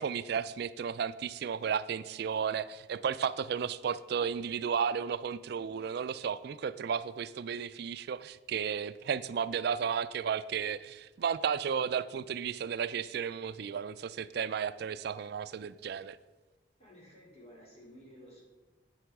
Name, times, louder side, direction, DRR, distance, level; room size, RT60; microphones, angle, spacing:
voice 1, 0.0-16.2, right 7 dB, 60° right, 14 dB, 0.3 m, -33 dB
voice 2, 16.8-18.4, equal, 35° left, -3 dB, 3.6 m, -54 dB
8.6 x 8.2 x 6.0 m, 1.2 s
head